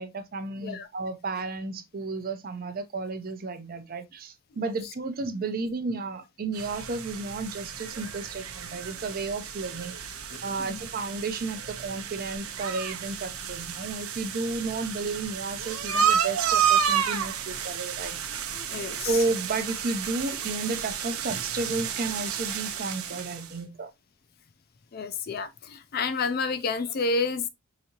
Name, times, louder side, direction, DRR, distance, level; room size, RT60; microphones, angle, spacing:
voice 1, 0.0-18.2 18.4-18.6 19.0-23.9, right 3 dB, 40° right, 0.6 m, -32 dB
sound 1, 6.5-23.5, right 8 dB, 80° right, 0.7 m, -31 dB
voice 2, 18.5-19.2 24.9-27.5, left 4 dB, 45° left, 0.4 m, -30 dB
4.9 x 2.7 x 2.8 m
head